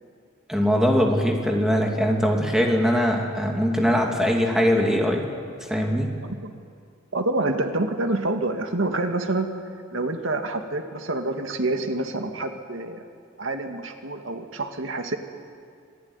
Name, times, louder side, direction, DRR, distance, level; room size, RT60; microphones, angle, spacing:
voice 1, 0.5-5.3 5.7-6.1, equal, 5° right, 0 dB, 2.7 m, -21 dB
voice 2, 6.2-6.5 7.1-9.5 9.9-13.0 13.4-15.2, right 2 dB, 90° right, 5 dB, 2.0 m, -27 dB
26.5 x 18.0 x 9.7 m, 2.2 s
head